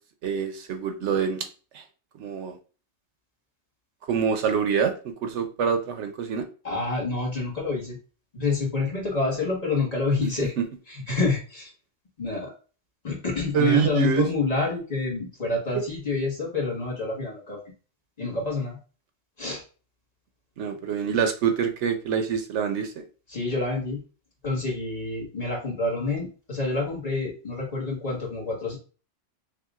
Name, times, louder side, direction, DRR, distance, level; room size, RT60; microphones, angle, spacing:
voice 1, 0.2-1.5 1.7-1.8 2.2-2.6 4.1-6.4 10.4-10.6 13.5-14.3 20.6-23.0, right 7 dB, 75° right, 7 dB, 0.9 m, -25 dB
voice 2, 6.6-8.0 8.3-10.5 10.9-11.7 12.2-12.5 13.0-17.6 18.2-18.8 19.4-19.6 23.3-24.0 24.4-28.8, left 3 dB, 35° left, -3 dB, 1.4 m, -28 dB
5.7 x 2.4 x 2.4 m, 0.36 s
omnidirectional pair, 1.2 m